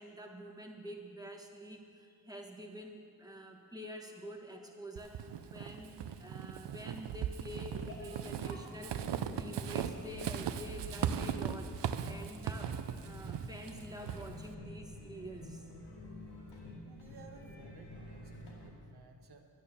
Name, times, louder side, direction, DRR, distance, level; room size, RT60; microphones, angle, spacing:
voice 1, 0.0-15.7, equal, 10° right, 0 dB, 1.4 m, -48 dB
Walk footsteps / Squeak, 5.0-14.5, right 8 dB, 90° right, 0.6 m, -38 dB
sound 1, 7.6-18.7, left 1 dB, 85° left, 2.5 m, -49 dB
voice 2, 16.9-19.5, right 4 dB, 70° right, 3 dB, 1.1 m, -57 dB
11.5 x 9.3 x 6.9 m, 2.5 s
wide cardioid pair, 110°, 41 cm